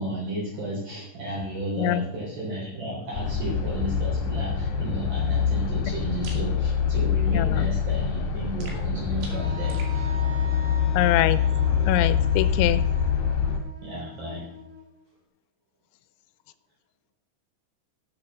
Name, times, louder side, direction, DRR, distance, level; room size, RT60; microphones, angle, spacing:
voice 1, 0.0-10.1 13.8-14.6, right 1 dB, 50° right, -5 dB, 4.9 m, -33 dB
sound 1, 3.1-13.6, left 7 dB, 60° left, 2.7 m, -25 dB
sound 2, 6.2-6.5 8.6-10.0, right 3 dB, 80° right, 4.4 m, -44 dB
voice 2, 7.3-7.7 10.9-11.4 11.9-12.8, left 14 dB, 85° left, 15 dB, 2.9 m, -24 dB
Wind instrument woodwind instrument, 9.3-15.1, right 1 dB, 20° right, 2.0 m, -42 dB
11.5 x 7.5 x 6.0 m, 0.70 s
omnidirectional pair, 5.3 m